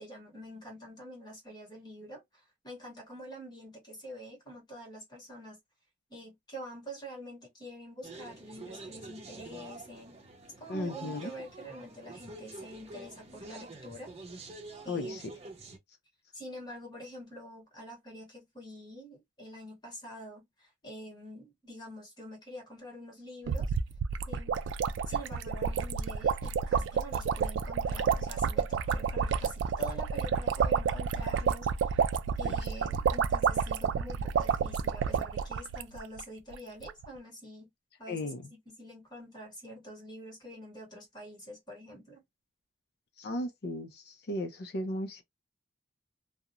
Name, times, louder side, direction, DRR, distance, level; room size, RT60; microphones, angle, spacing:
voice 1, 0.0-5.6 6.1-10.2 10.6-14.5 14.8-15.2 16.3-23.7 24.3-24.6 25.1-32.0 32.4-37.7 38.0-42.2, equal, 25° left, 1.2 m, -46 dB
sound 1, 8.0-15.8, right 3 dB, 35° right, 0.7 m, -47 dB
voice 2, 10.7-11.3 14.9-15.2 32.4-32.5 38.1-38.5 43.2-45.2, left 1 dB, 55° left, 0.5 m, -36 dB
sound 2, 23.5-36.2 36.5-36.6 36.8-37.1, right 6 dB, 75° right, 0.3 m, -30 dB
2.4 x 2.0 x 2.8 m
head